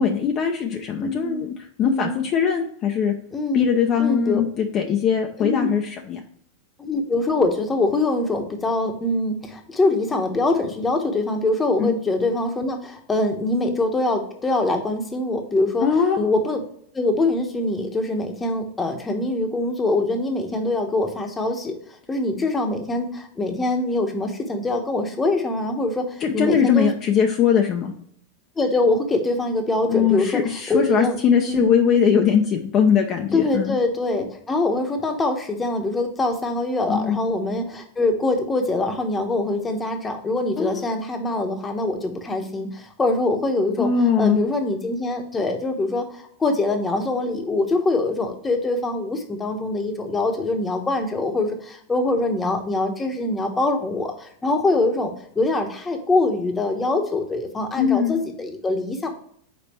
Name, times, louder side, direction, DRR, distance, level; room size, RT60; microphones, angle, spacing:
voice 1, 0.0-1.5 1.8-3.1 3.5-6.2 11.8-12.0 15.8-16.2 26.2-27.9 29.9-33.8 36.9-37.2 40.6-40.9 43.8-44.4 57.8-58.2, left 7 dB, 35° left, 2 dB, 0.7 m, -21 dB
voice 2, 1.0-1.4 1.8-2.1 3.3-3.7 4.0-4.4 5.4-5.8 6.8-15.9 16.2-16.6 16.9-21.8 22.1-26.9 28.6-31.2 31.5-31.7 33.3-43.9 44.2-59.1, left 2 dB, 15° left, 4 dB, 1.1 m, -24 dB
5.3 x 4.1 x 4.3 m, 0.65 s
supercardioid pair, 130°, 0 cm